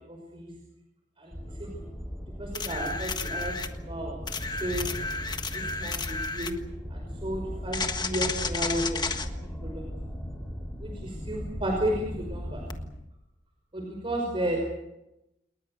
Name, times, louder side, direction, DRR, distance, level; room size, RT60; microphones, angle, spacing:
voice 1, 0.1-0.5 1.2-1.8 2.4-4.2 4.6-4.9 5.5-6.5 6.9-9.8 10.8-12.6 13.7-14.6, right 1 dB, 30° right, 1 dB, 5.5 m, -33 dB
sound 1, 1.3-12.9, equal, 5° left, 4.5 m, -38 dB
sound 2, 2.5-3.7 4.3-6.6 7.7-9.3 12.7-12.8, left 4 dB, 25° left, 1.5 m, -32 dB
28.5 x 21.0 x 6.6 m, 0.90 s
head